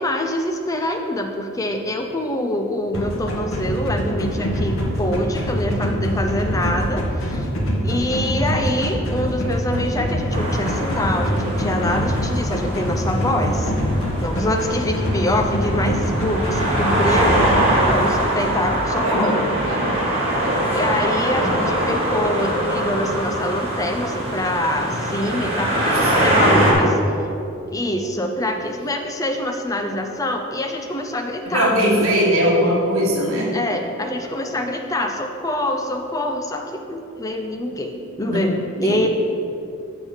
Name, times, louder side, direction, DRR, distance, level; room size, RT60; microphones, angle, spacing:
voice 1, 0.0-7.5 7.8-13.7 14.2-19.5 20.4-26.9 27.7-31.7 33.5-39.1, left 1 dB, 15° left, 4 dB, 0.4 m, -25 dB
sound 1, 2.9-17.7, equal, 70° left, 1.0 m, -24 dB
sound 2, 10.3-26.7, right 1 dB, 30° right, 1.3 m, -23 dB
voice 2, 19.0-20.0 20.4-20.7 21.3-21.7 25.9-26.1 26.4-26.6 31.4-33.5 38.3-38.4 38.8-39.1, equal, 80° right, -4 dB, 1.3 m, -21 dB
6.9 x 3.6 x 6.3 m, 2.7 s
head